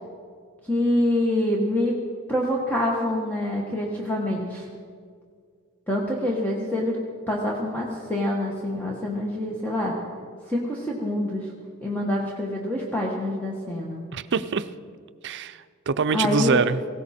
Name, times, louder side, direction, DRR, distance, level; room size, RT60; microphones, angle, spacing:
voice 1, 0.6-2.0 2.3-4.7 5.9-7.0 7.3-10.0 10.5-11.5 11.8-14.0 16.1-16.6, left 1 dB, 10° left, -3 dB, 1.3 m, -26 dB
voice 2, 14.1-14.7 15.2-16.8, right 5 dB, 55° right, 12 dB, 0.5 m, -24 dB
18.5 x 16.5 x 4.3 m, 2.1 s
head